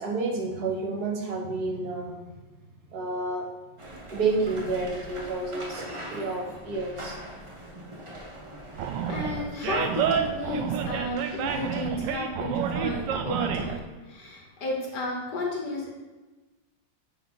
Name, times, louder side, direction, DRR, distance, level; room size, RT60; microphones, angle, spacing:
voice 1, 0.0-2.2 2.9-3.5 4.1-7.2, right 3 dB, 55° right, -1 dB, 1.8 m, -30 dB
sound 1, 3.8-11.7, right 1 dB, 30° right, 0.5 m, -42 dB
voice 2, 8.8-15.9, left 2 dB, 65° left, -1 dB, 1.6 m, -33 dB
Animal, 8.8-13.8, right 7 dB, 80° right, 1.3 m, -29 dB
9.4 x 3.9 x 3.9 m, 1.2 s
omnidirectional pair, 2.0 m